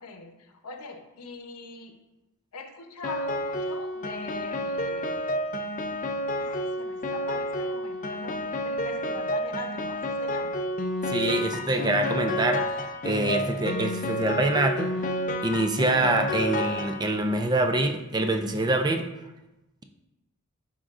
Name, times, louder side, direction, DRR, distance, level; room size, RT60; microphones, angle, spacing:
voice 1, 0.0-2.0 2.5-5.2 6.4-10.5, left 3 dB, 85° left, 5 dB, 0.8 m, -42 dB
Piano, 3.0-17.4, equal, 35° left, 0.5 m, -30 dB
voice 2, 11.1-14.9 15.4-19.1, right 2 dB, 20° right, 5 dB, 0.4 m, -25 dB
11.0 x 3.7 x 2.5 m, 0.97 s
head